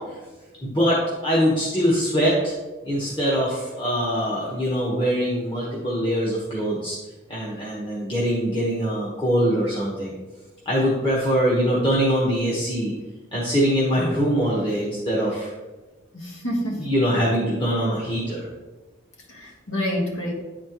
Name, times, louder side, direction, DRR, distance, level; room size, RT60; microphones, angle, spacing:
voice 1, 0.6-2.5 2.8-7.0 7.3-10.1 10.6-12.9 13.3-15.5 16.8-18.5, equal, 25° left, -6 dB, 1.1 m, -23 dB
voice 2, 2.8-3.2 16.1-16.9 19.3-20.3, equal, 75° left, 0 dB, 1.5 m, -28 dB
9.9 x 4.3 x 3.0 m, 1.2 s
head